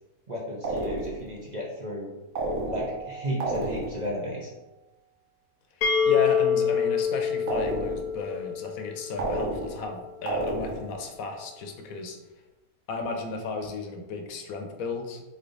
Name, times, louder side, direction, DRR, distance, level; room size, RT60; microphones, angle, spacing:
voice 1, 0.3-2.1 2.7-4.5, equal, 50° right, -4 dB, 0.5 m, -33 dB
sound 1, 0.6-1.4 2.4-3.1 3.4-4.1 7.5-8.2 9.2-9.9 10.3-11.0, right 2 dB, 65° right, 1.2 m, -31 dB
Keyboard (musical), 2.7-4.9, right 5 dB, 85° right, 1.7 m, -45 dB
sound 2, 5.8-9.5, left 7 dB, 90° left, 1.3 m, -26 dB
voice 2, 5.8-12.2 12.9-15.2, left 4 dB, 70° left, 4 dB, 1.0 m, -34 dB
3.9 x 3.3 x 3.8 m, 1.1 s
omnidirectional pair, 1.6 m